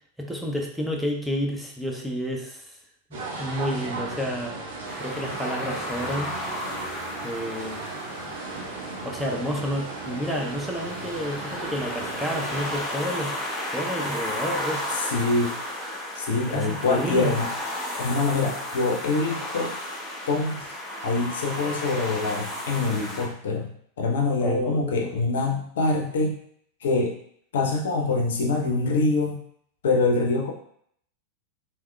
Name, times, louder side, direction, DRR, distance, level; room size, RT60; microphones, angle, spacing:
voice 1, 0.2-2.7 3.1-4.6 5.0-6.3 7.2-7.9 9.0-13.4 13.7-15.1 16.5-17.3 24.4-25.1, equal, ahead, -1 dB, 0.5 m, -30 dB
sound 1, 3.1-12.8, right 3 dB, 60° right, 0.7 m, -36 dB
sound 2, 4.9-23.3, left 1 dB, 15° left, 0.9 m, -34 dB
voice 2, 15.1-15.5 16.2-17.5 17.9-19.7 20.3-20.6 21.0-23.7 24.0-26.4 26.8-27.1 27.5-29.4 29.8-30.5, left 3 dB, 60° left, 1 dB, 0.6 m, -24 dB
3.5 x 2.9 x 2.2 m, 0.65 s
figure-of-eight pair, 90°, 0 cm